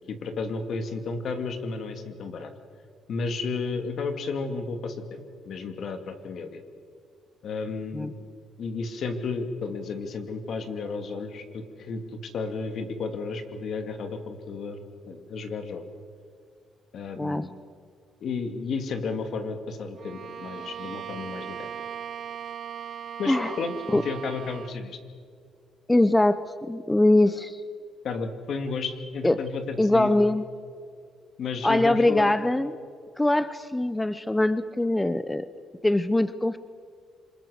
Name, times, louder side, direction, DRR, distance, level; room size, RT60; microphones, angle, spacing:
voice 1, 0.1-2.5 3.1-6.6 7.4-8.1 8.6-15.8 16.9-17.5 18.2-21.7 23.2-25.0 28.0-30.1 31.4-32.3, left 4 dB, 65° left, 7 dB, 2.5 m, -33 dB
Bowed string instrument, 20.0-24.8, right 8 dB, 60° right, 0.8 m, -38 dB
voice 2, 25.9-27.6 29.2-29.3 29.8-30.4 31.6-32.7 33.2-35.5 35.8-36.6, left 1 dB, 10° left, 13 dB, 0.7 m, -22 dB
26.5 x 22.5 x 6.6 m, 2.2 s
cardioid pair, 90°, 0 cm